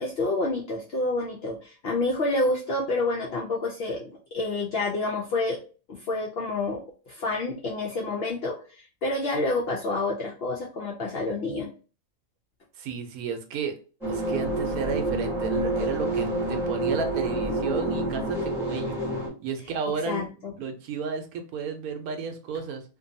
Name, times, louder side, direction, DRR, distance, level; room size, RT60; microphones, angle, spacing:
voice 1, 0.0-5.6 5.9-6.8 7.1-11.7 20.1-20.5, left 2 dB, 70° left, -1 dB, 0.6 m, -28 dB
voice 2, 12.8-13.7 14.0-19.0 19.4-20.2 20.5-22.8, right 5 dB, 85° right, 6 dB, 1.1 m, -32 dB
sound 1, 14.0-19.3, right 1 dB, ahead, 0.6 m, -28 dB
2.6 x 2.2 x 2.6 m, 0.36 s
omnidirectional pair, 1.5 m